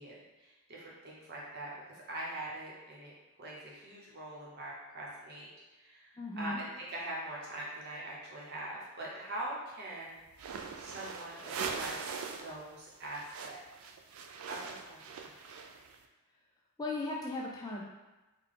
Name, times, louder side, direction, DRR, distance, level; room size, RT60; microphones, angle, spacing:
voice 1, 0.0-1.7 2.1-3.1 3.4-5.5 5.8-10.2 10.8-12.1 12.4-13.6 14.4-15.3, right 1 dB, 45° right, -5 dB, 0.9 m, -43 dB
voice 2, 6.2-6.7 16.8-17.8, left 2 dB, 15° left, -3 dB, 0.3 m, -37 dB
sound 1, 10.3-12.5 12.8-16.0, right 5 dB, 65° right, 0.3 m, -41 dB
3.5 x 2.2 x 3.7 m, 1.1 s
head